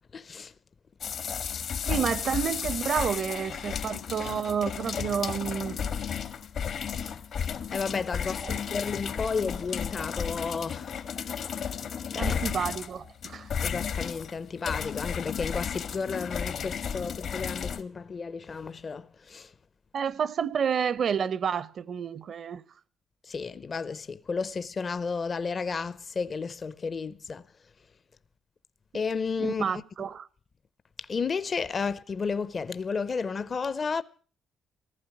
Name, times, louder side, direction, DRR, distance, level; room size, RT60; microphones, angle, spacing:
voice 1, 0.1-0.5 7.7-10.9 11.3-11.4 12.1-12.4 13.6-19.5 23.2-27.4 28.9-29.8 31.0-34.0, left 5 dB, 40° left, 0.7 m, -32 dB
sound 1, 1.0-17.8, left 7 dB, 65° left, 1.5 m, -33 dB
voice 2, 1.9-5.8 8.4-8.6 12.2-13.5 19.9-22.6 29.4-30.3, right 7 dB, 55° right, 0.7 m, -30 dB
15.0 x 14.5 x 6.1 m
cardioid pair, 90°, 0 cm